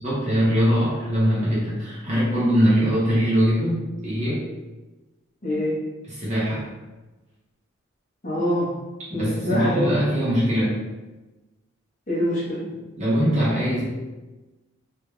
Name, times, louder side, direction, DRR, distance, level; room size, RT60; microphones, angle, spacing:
voice 1, 0.0-3.8 4.0-4.4 6.0-6.7 9.1-10.7 13.0-13.9, equal, 35° right, -8 dB, 0.9 m, -22 dB
voice 2, 5.4-5.8 8.2-8.7 9.1-9.9 12.1-12.6, left 1 dB, 35° left, -7 dB, 1.0 m, -24 dB
3.4 x 2.3 x 3.1 m, 1.1 s
head